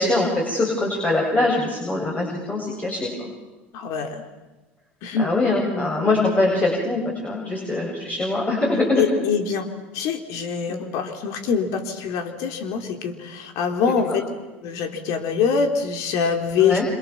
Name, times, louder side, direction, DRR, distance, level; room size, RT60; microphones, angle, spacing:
voice 1, 0.0-3.1 5.2-9.2 10.7-10.8 14.1-14.2 16.6-16.9, left 2 dB, 20° left, -1 dB, 7.8 m, -23 dB
voice 2, 3.7-4.2 5.0-5.3 5.7-5.9 7.5-7.7 8.9-9.7 9.9-14.3 14.6-16.8, left 6 dB, 65° left, 6 dB, 3.7 m, -24 dB
27.5 x 27.0 x 7.4 m, 1.1 s
hypercardioid pair, 75°, 6 cm